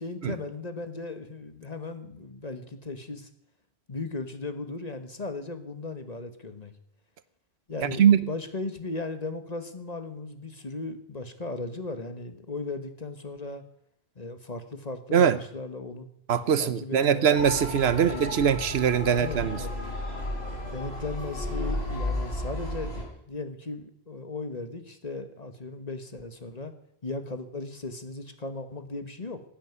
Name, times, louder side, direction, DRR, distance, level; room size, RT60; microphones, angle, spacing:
voice 1, 0.0-3.3 3.9-6.7 7.7-13.6 14.1-16.1 16.4-17.3 17.9-18.4 19.0-19.9 20.7-22.9 23.3-26.7 27.0-29.4, left 3 dB, 40° left, 1.5 m, -37 dB
voice 2, 7.8-8.3 15.1-15.4 16.3-19.6, right 8 dB, 85° right, 1.1 m, -22 dB
Motor vehicle (road) / Siren, 17.3-23.0, left 1 dB, 90° left, 3.8 m, -33 dB
15.5 x 8.7 x 9.5 m
omnidirectional pair, 1.0 m